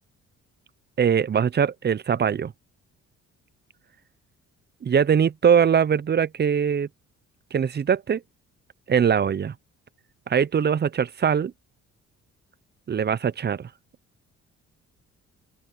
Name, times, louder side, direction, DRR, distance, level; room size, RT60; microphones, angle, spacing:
voice 1, 1.0-2.5 4.8-6.9 7.5-8.2 8.9-9.5 10.3-11.5 12.9-13.7, right 7 dB, 35° right, 0.7 m, -22 dB
open air
cardioid pair, 90°, 30 cm